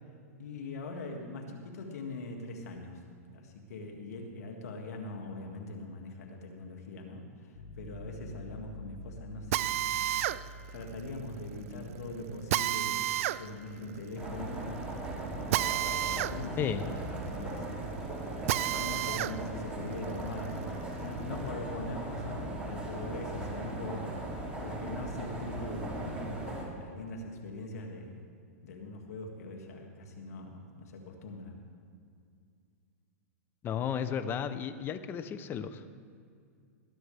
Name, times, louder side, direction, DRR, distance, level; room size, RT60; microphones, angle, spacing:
voice 1, 0.4-3.0 3.3-10.3 10.7-14.7 15.6-17.6 18.3-26.3 26.7-28.3 28.6-31.6, left 2 dB, 80° left, 2 dB, 2.2 m, -42 dB
sound 1, 7.6-17.4, equal, 65° left, 1.4 m, -51 dB
Drill, 9.5-19.4 19.8-21.4, right 13 dB, 60° right, 0.4 m, -33 dB
sound 2, 14.2-26.6, right 1 dB, 15° right, 2.8 m, -38 dB
voice 2, 33.6-35.8, left 8 dB, 25° left, 11 dB, 0.7 m, -33 dB
20.5 x 10.5 x 3.4 m, 2.3 s
hypercardioid pair, 135°, 8 cm